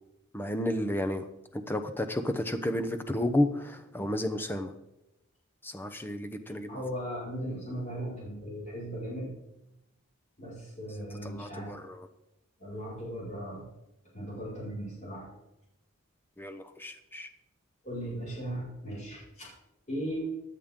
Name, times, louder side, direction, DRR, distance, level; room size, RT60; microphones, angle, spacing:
voice 1, 0.3-1.3 1.5-4.7 5.6-6.8 11.2-12.1 16.4-17.3, left 1 dB, 10° left, 7 dB, 0.8 m, -32 dB
voice 2, 6.7-9.3 10.4-11.8 12.6-13.7 14.1-15.3 17.8-19.5 19.9-20.2, equal, 35° left, -5 dB, 5.4 m, -37 dB
16.0 x 10.0 x 3.8 m, 0.90 s
head